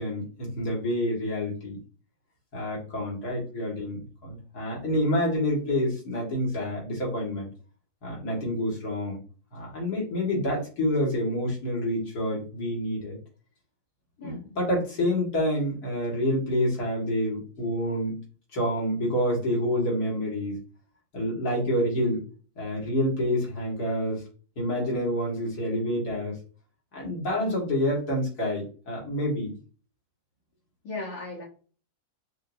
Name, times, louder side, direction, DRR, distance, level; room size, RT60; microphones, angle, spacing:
voice 1, 0.0-1.8 2.5-7.5 8.0-9.2 9.5-13.2 14.2-18.2 18.5-20.6 21.1-22.2 22.6-24.2 24.6-26.4 26.9-29.5, left 1 dB, 80° left, -4 dB, 2.4 m, -28 dB
voice 2, 30.8-31.4, left 2 dB, 60° left, -5 dB, 1.6 m, -36 dB
5.6 x 2.8 x 2.6 m, 0.39 s
omnidirectional pair, 1.6 m